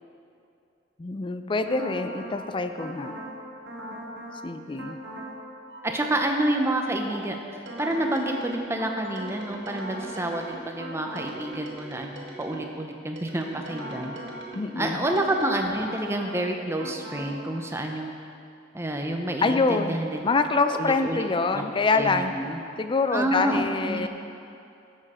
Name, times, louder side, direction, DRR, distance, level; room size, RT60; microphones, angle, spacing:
voice 1, 1.0-3.1 4.4-5.0 14.5-15.1 19.4-20.0 20.2-22.3 22.8-24.1, left 3 dB, 25° left, 8 dB, 0.4 m, -25 dB
sound 1, 1.7-2.4 2.8-3.4 3.7-4.4 4.8-5.4 5.7-12.7 13.2-16.4 16.8-17.4, right 1 dB, 75° right, 1.6 m, -39 dB
voice 2, 5.8-7.4 7.8-14.2 14.8-18.2 18.7-20.2 20.7-21.2 21.5-21.6 21.9-22.6 23.1-24.1, right 1 dB, 15° right, 3 dB, 0.7 m, -28 dB
11.5 x 7.4 x 4.3 m, 2.7 s
head